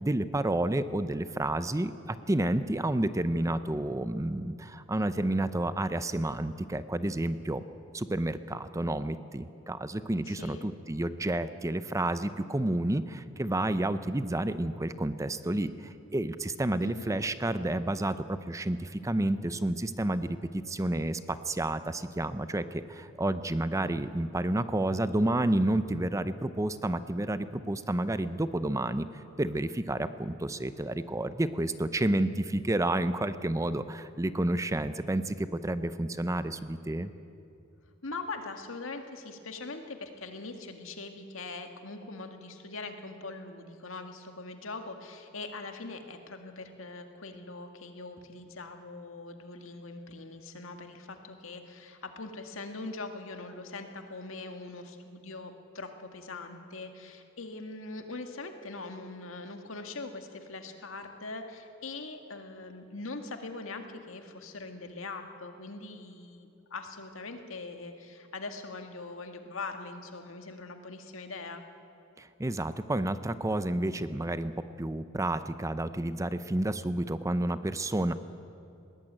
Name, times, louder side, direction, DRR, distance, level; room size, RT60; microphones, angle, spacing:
voice 1, 0.0-7.6 7.9-29.1 29.4-37.1 72.2-78.1, right 1 dB, 15° right, 12 dB, 0.6 m, -30 dB
voice 2, 10.3-10.7 16.8-17.2 38.0-71.6, left 3 dB, 75° left, 5 dB, 1.9 m, -42 dB
21.0 x 18.0 x 8.9 m, 2.8 s
head